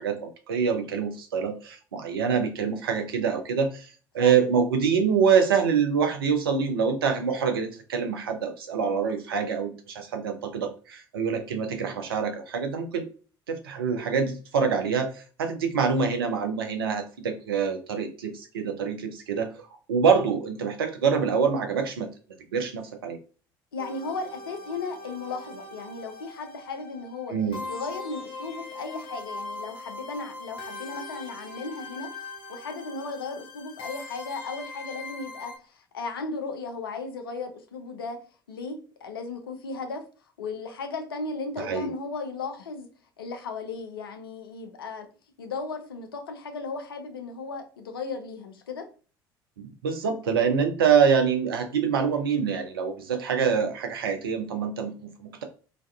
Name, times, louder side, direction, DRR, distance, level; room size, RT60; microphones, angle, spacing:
voice 1, 0.0-13.1 13.5-19.5 19.9-22.1 22.5-23.2 27.3-27.6 41.6-41.9 49.6-55.4, right 6 dB, 75° right, 0.4 m, -25 dB
voice 2, 23.7-27.4 27.7-38.2 38.5-40.0 40.4-42.9 43.2-45.1 45.4-48.9, left 4 dB, 80° left, 0.4 m, -36 dB
sound 1, 23.8-35.6, left 2 dB, 50° left, 0.8 m, -41 dB
2.5 x 2.2 x 2.2 m
figure-of-eight pair, 60°, 12 cm